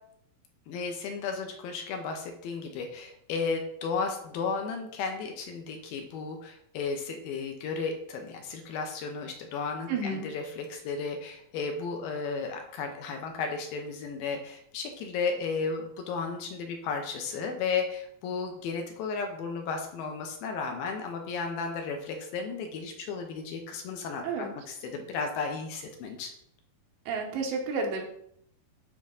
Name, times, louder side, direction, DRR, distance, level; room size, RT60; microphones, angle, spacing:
voice 1, 0.7-26.3, left 5 dB, 80° left, 3 dB, 2.4 m, -34 dB
voice 2, 9.9-10.3 24.2-24.5 27.1-28.0, right 4 dB, 85° right, 1 dB, 3.1 m, -31 dB
9.5 x 3.6 x 3.9 m, 0.71 s
omnidirectional pair, 4.5 m